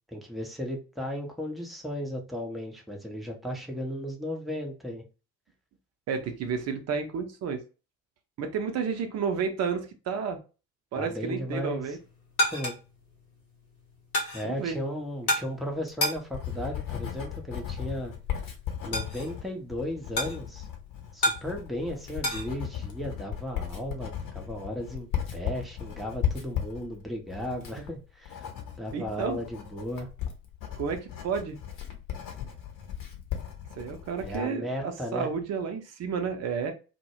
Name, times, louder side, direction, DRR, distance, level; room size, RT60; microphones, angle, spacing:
voice 1, 0.1-5.0 11.0-12.0 12.5-12.8 14.3-18.1 18.8-20.7 21.1-28.5 28.8-30.1 34.2-35.3, equal, ahead, 2 dB, 0.6 m, -35 dB
voice 2, 6.1-7.6 8.4-10.4 10.9-12.0 14.4-14.8 28.9-29.4 30.8-31.6 33.7-36.7, right 6 dB, 40° right, 7 dB, 0.6 m, -31 dB
sound 1, 11.8-22.5, left 1 dB, 85° left, 0.8 m, -33 dB
Writing, 15.7-34.5, left 10 dB, 50° left, 0.8 m, -36 dB
2.1 x 2.0 x 3.0 m, 0.32 s
figure-of-eight pair, 45°, 42 cm